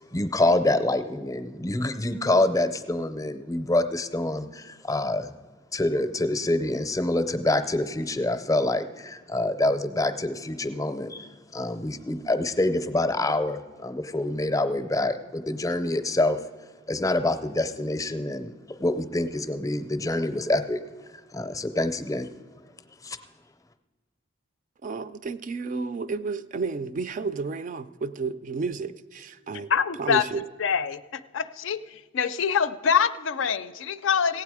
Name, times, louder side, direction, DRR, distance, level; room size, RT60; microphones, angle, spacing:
voice 1, 0.1-5.3 5.7-16.4 16.9-20.8 21.3-22.3 23.0-23.2, left 2 dB, 15° left, 0.5 m, -26 dB
voice 2, 24.8-29.7 30.0-30.5, right 4 dB, 40° right, 0.3 m, -31 dB
voice 3, 29.7-30.2 30.6-31.8 32.1-34.4, left 7 dB, 70° left, 0.4 m, -25 dB
16.0 x 8.9 x 4.8 m
head